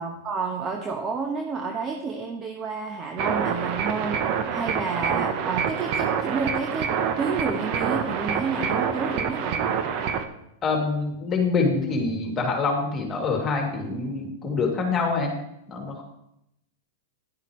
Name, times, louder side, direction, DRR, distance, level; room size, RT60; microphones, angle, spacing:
voice 1, 0.0-4.2 4.5-9.6, right 5 dB, 30° right, 3 dB, 1.2 m, -30 dB
sound 1, 3.2-10.2, right 7 dB, 50° right, 1.1 m, -27 dB
voice 2, 10.6-15.3 15.7-16.0, left 4 dB, 25° left, 0 dB, 2.7 m, -25 dB
11.0 x 10.5 x 3.2 m, 0.79 s
hypercardioid pair, 115°, 0 cm